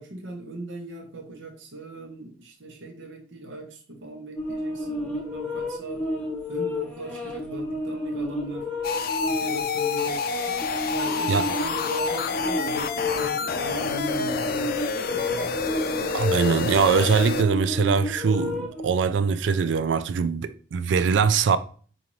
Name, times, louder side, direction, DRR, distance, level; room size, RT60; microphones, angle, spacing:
voice 1, 0.0-6.0 6.5-8.7 9.2-10.3 10.9-15.5, right 1 dB, 90° right, 0.9 m, -38 dB
sound 1, 4.4-18.9, left 2 dB, 10° left, 0.7 m, -31 dB
sound 2, 8.8-17.4, left 5 dB, 50° left, 0.4 m, -28 dB
voice 2, 16.1-21.6, right 5 dB, 70° right, 0.3 m, -22 dB
5.2 x 2.5 x 3.0 m
head